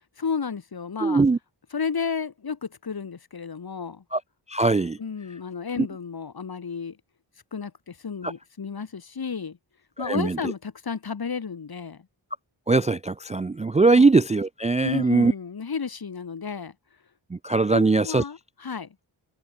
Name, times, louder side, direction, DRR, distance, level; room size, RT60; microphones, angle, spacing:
voice 1, 0.2-1.2 1.7-4.0 5.0-7.0 7.5-9.6 10.0-12.0 13.9-14.1 14.8-16.7 17.7-18.9, left 6 dB, 50° left, 1.6 m, -32 dB
voice 2, 1.0-1.4 4.1-4.2 4.5-5.0 5.8-5.9 8.2-8.3 10.0-10.4 12.7-15.3 17.3-18.2, right 3 dB, 15° right, 0.3 m, -21 dB
wide cardioid pair, 100°, 48 cm